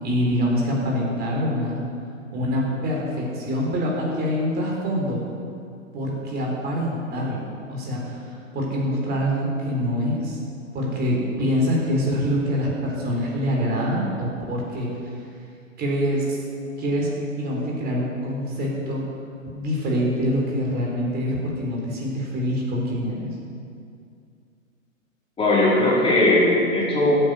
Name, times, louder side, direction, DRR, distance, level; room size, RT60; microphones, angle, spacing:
voice 1, 0.0-1.8 2.3-5.2 5.9-8.2 8.5-10.4 10.7-14.9 15.8-16.4 16.8-19.0 19.5-23.3, equal, 25° right, -2 dB, 3.9 m, -25 dB
voice 2, 25.4-27.1, left 1 dB, 15° left, -6 dB, 4.2 m, -18 dB
15.0 x 9.3 x 6.4 m, 2.4 s
hypercardioid pair, 125°, 41 cm